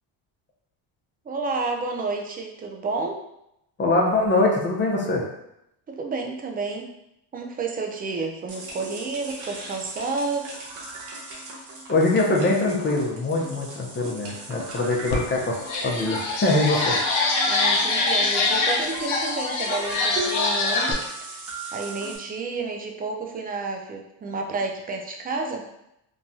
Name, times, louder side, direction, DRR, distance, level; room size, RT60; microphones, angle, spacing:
voice 1, 1.3-3.2 5.9-6.9 7.3-10.5 17.5-21.0 21.3-21.5 21.7-25.7, right 3 dB, 20° right, 2 dB, 0.3 m, -30 dB
voice 2, 3.8-5.2 11.9-17.0, left 2 dB, 25° left, -1 dB, 0.6 m, -23 dB
sound 1, 8.5-22.2, right 2 dB, 85° right, 0.9 m, -37 dB
sound 2, 15.1-15.2 15.6-20.9, left 3 dB, 80° left, 0.7 m, -24 dB
3.1 x 2.2 x 2.6 m, 0.81 s
cardioid pair, 90°, 48 cm